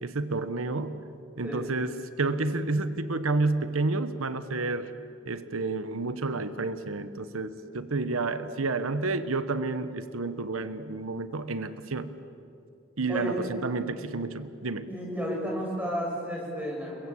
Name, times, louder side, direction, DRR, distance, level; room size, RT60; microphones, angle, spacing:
voice 1, 0.0-1.0 1.4-4.9 5.3-12.1 13.0-14.9, right 3 dB, 90° right, 11 dB, 1.1 m, -30 dB
voice 2, 13.1-13.5 14.9-17.1, equal, 5° right, -2 dB, 7.0 m, -32 dB
29.5 x 22.0 x 8.5 m, 2.7 s
head